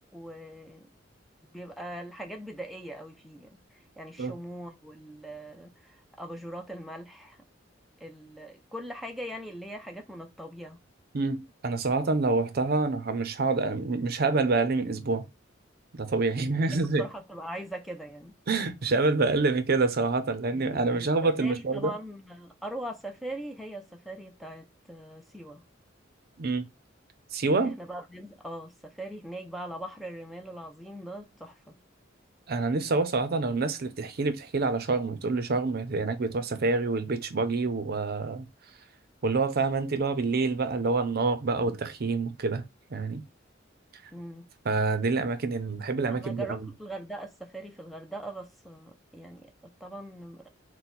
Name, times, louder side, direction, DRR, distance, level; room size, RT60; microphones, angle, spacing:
voice 1, 0.1-0.9 1.5-7.4 8.0-10.8 17.0-18.4 20.5-25.6 27.5-31.8 44.1-44.5 46.1-50.5, right 1 dB, ahead, 0.4 m, -41 dB
voice 2, 11.1-15.2 15.9-17.0 18.5-21.9 26.4-26.6 27.3-27.8 32.5-38.5 39.2-42.6 42.9-43.2 44.7-46.6, right 3 dB, 50° right, 0.5 m, -27 dB
3.9 x 2.1 x 4.2 m
head